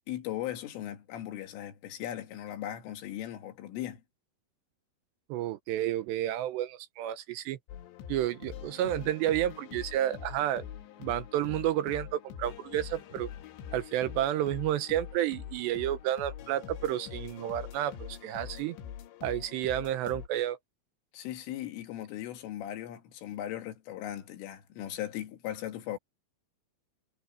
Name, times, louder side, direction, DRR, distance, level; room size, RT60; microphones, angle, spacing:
voice 1, 0.0-4.0 21.1-26.0, left 12 dB, 85° left, 4.6 m, -38 dB
voice 2, 5.3-7.6 8.1-10.7 11.0-13.3 13.7-18.8 19.2-20.6, right 12 dB, 75° right, 2.7 m, -31 dB
sound 1, 7.7-20.3, left 9 dB, 70° left, 3.7 m, -44 dB
omnidirectional pair, 5.6 m